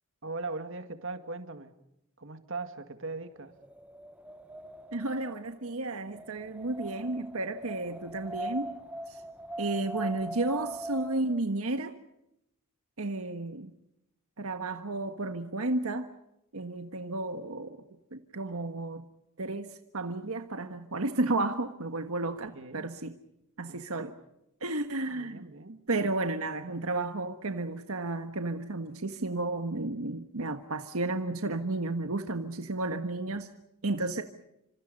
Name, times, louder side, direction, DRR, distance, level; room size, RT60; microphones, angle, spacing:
voice 1, 0.2-1.7 2.2-3.5 22.2-22.9 23.7-24.1 25.1-25.8, right 3 dB, 60° right, 8 dB, 2.1 m, -40 dB
Wind, 3.5-11.4, right 1 dB, 5° right, 0.9 m, -41 dB
voice 2, 4.9-8.8 9.1-9.2 9.6-12.0 13.0-13.7 14.4-16.1 16.5-17.8 18.1-19.0 19.4-23.1 23.6-24.1 24.6-25.4 25.9-33.5 33.8-34.2, right 2 dB, 85° right, 7 dB, 1.5 m, -32 dB
29.5 x 26.0 x 5.4 m, 0.82 s
head